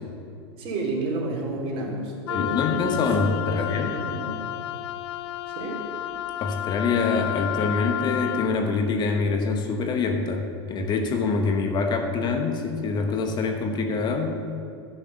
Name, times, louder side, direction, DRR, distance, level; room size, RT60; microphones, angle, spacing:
voice 1, 0.6-3.1 3.5-4.3 5.5-5.8, right 2 dB, 45° right, -2 dB, 2.8 m, -31 dB
Wind instrument woodwind instrument, 2.3-8.5, left 13 dB, 70° left, 0.5 m, -31 dB
voice 2, 2.3-4.0 6.4-14.4, left 4 dB, 30° left, 4 dB, 1.0 m, -25 dB
10.5 x 5.9 x 7.0 m, 2.6 s
hypercardioid pair, 105°, 14 cm